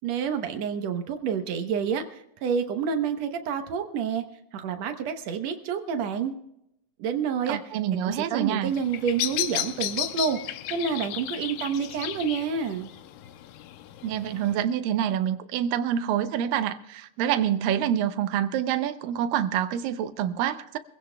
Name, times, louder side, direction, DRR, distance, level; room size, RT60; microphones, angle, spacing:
voice 1, 0.0-4.2 4.5-6.3 7.0-7.6 8.0-10.4 10.7-12.9, right 6 dB, 65° right, 1.8 m, -28 dB
voice 2, 7.5-8.7 14.0-20.8, right 10 dB, 85° right, 2.4 m, -27 dB
Bird vocalization bird call bird song, 8.6-14.6, left 12 dB, 90° left, 2.4 m, -34 dB
24.0 x 16.0 x 2.3 m
omnidirectional pair, 4.0 m